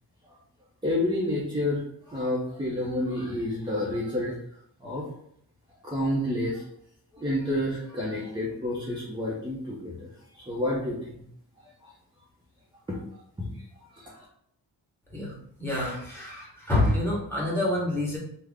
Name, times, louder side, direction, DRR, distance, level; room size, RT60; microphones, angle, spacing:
voice 1, 0.8-4.4 4.8-5.1 5.8-6.6 7.1-10.1 10.3-11.2 11.8-11.9 12.9-13.0 13.4-13.5 13.9-14.2, left 1 dB, 10° right, -5 dB, 0.6 m, -29 dB
voice 2, 15.1-18.2, left 1 dB, 5° left, -5 dB, 1.2 m, -27 dB
3.5 x 2.1 x 3.5 m, 0.69 s
wide cardioid pair, 110°, 42 cm